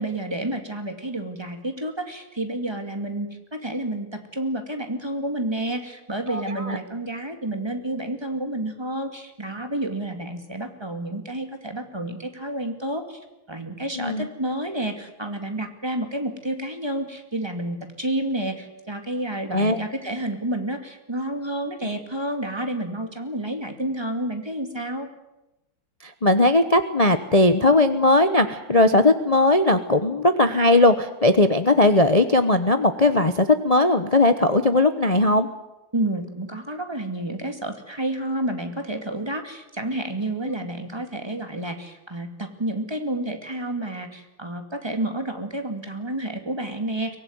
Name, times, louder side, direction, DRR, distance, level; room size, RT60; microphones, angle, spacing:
voice 1, 0.0-25.1 35.9-47.2, right 1 dB, 10° right, 5 dB, 2.2 m, -30 dB
voice 2, 14.0-14.3 19.5-19.8 26.0-35.5, left 2 dB, 30° left, 9 dB, 0.6 m, -18 dB
23.5 x 18.0 x 9.4 m, 0.97 s
omnidirectional pair, 2.3 m